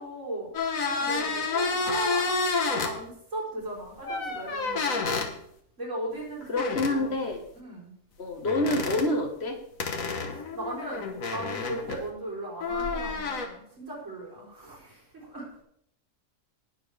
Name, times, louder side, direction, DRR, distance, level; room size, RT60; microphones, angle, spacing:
voice 1, 0.0-5.3 5.8-7.2 7.5-7.9 10.3-15.6, right 1 dB, 65° right, -5 dB, 4.4 m, -38 dB
sound 1, 0.5-2.9 4.0-5.3 6.5-7.0 8.4-9.1 9.8-12.1 12.6-13.5, left 4 dB, 90° left, 1.8 m, -29 dB
voice 2, 6.5-7.4 8.2-9.6, left 2 dB, 50° left, 4 dB, 1.9 m, -27 dB
19.5 x 7.1 x 3.5 m, 0.68 s
omnidirectional pair, 1.4 m